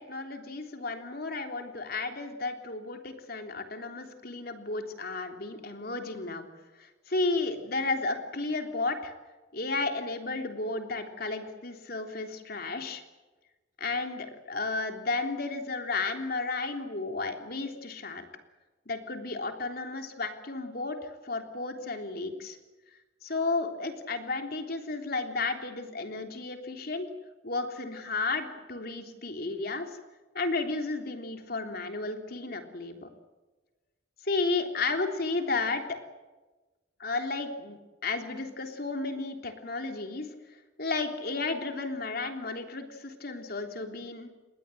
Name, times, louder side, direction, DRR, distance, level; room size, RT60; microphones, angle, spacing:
voice 1, 0.0-6.5 6.8-9.1 9.5-13.0 13.8-18.2 18.8-22.6 23.2-27.1 27.4-29.9 30.3-33.1 34.2-35.8 37.0-40.3 40.8-44.3, left 3 dB, 55° left, 4 dB, 3.4 m, -33 dB
28.0 x 21.0 x 7.9 m, 1.2 s
head